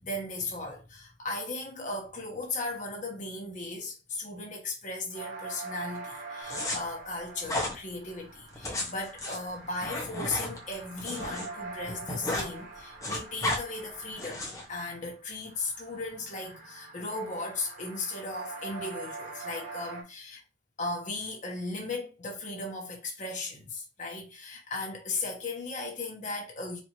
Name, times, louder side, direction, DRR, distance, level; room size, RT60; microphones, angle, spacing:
voice 1, 0.0-20.4 20.8-26.8, left 2 dB, 40° left, 1.3 m, -36 dB
sound 1, 5.1-15.2 15.4-20.0, right 4 dB, 40° right, 1.0 m, -44 dB
sound 2, 6.5-6.8 7.4-7.7 8.5-11.5 11.8-12.5 12.8-13.6 14.2-14.6, left 1 dB, 15° left, 1.0 m, -33 dB
4.3 x 2.8 x 3.0 m
head